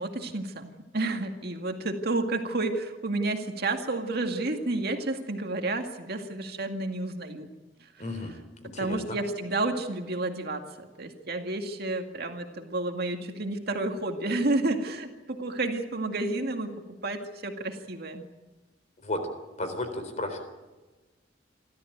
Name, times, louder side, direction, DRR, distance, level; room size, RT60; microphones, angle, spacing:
voice 1, 0.0-7.5 8.8-16.7 17.0-18.3, right 2 dB, 55° right, 4 dB, 2.1 m, -30 dB
voice 2, 8.0-9.2 19.0-19.2 19.6-20.4, left 1 dB, 40° left, 7 dB, 4.1 m, -34 dB
27.5 x 13.5 x 9.3 m, 1.2 s
head